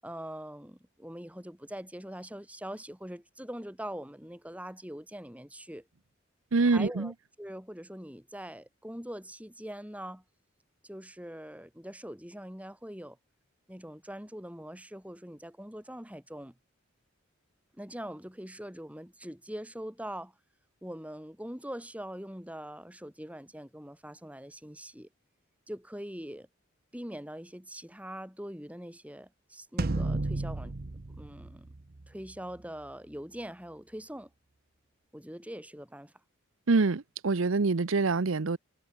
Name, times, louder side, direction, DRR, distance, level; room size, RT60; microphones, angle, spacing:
voice 1, 0.0-5.9 6.6-10.2 10.8-13.2 13.7-16.5 17.7-20.3 20.8-25.1 25.7-26.5 26.9-30.7 31.2-31.7 32.1-34.3 35.1-36.1, equal, 5° right, 6.9 m, -43 dB
voice 2, 6.5-7.1 36.7-38.6, right 3 dB, 75° right, 0.7 m, -25 dB
sound 1, 29.8-32.3, right 2 dB, 45° right, 0.8 m, -33 dB
head